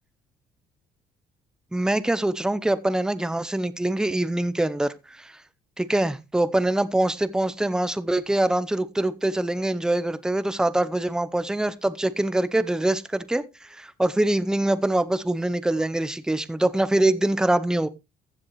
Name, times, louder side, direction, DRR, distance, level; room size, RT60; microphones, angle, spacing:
voice 1, 1.7-5.4 5.8-17.9, right 1 dB, 5° right, 0.7 m, -24 dB
15.0 x 7.5 x 3.1 m
cardioid pair, 110°, 17 cm